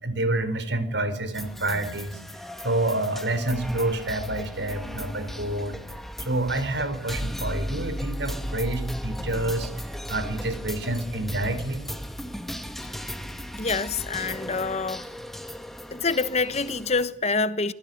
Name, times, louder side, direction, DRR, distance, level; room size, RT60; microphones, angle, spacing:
voice 1, 0.0-5.8 6.2-11.8 13.3-13.4, right 1 dB, 75° right, 4.8 m, -28 dB
sound 1, 1.3-17.1, equal, ahead, 2.0 m, -36 dB
voice 2, 13.6-15.0 15.9-17.7, left 4 dB, 40° left, 1.2 m, -26 dB
24.5 x 22.0 x 9.2 m
head